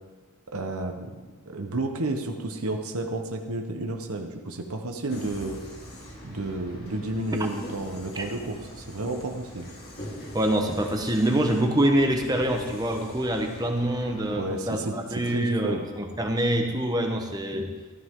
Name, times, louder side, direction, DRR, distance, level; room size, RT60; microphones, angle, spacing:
voice 1, 0.5-1.1 1.5-5.6 6.2-9.7 14.3-15.0 15.2-15.9, right 2 dB, 80° right, 4 dB, 1.2 m, -31 dB
sound 1, 5.1-14.4, equal, 45° left, 2.4 m, -42 dB
voice 2, 10.3-17.7, right 1 dB, 15° right, 3 dB, 1.1 m, -25 dB
14.5 x 13.0 x 3.8 m, 1.3 s
head